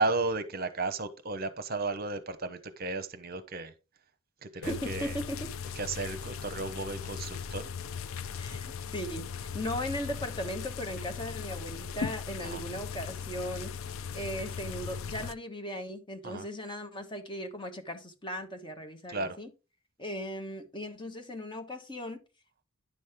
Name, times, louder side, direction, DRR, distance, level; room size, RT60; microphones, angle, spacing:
voice 1, 0.0-3.7 4.4-5.2 5.8-7.7 12.4-12.6 16.2-16.5 19.1-19.4, right 3 dB, 45° right, 0.9 m, -33 dB
sound 1, 4.6-15.3, left 6 dB, 75° left, 0.5 m, -38 dB
voice 2, 4.6-5.7 8.4-13.7 14.1-19.5 20.0-22.2, equal, 20° left, 1.3 m, -38 dB
10.0 x 6.3 x 3.5 m
head